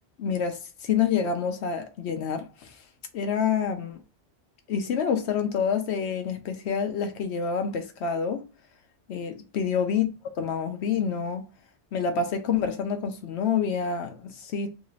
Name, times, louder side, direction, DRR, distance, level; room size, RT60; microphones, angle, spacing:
voice 1, 0.2-2.8 3.1-4.0 4.7-8.5 9.1-10.1 10.4-11.4 11.9-14.7, left 6 dB, 70° left, 0.9 m, -27 dB
3.2 x 2.5 x 3.1 m
omnidirectional pair, 1.2 m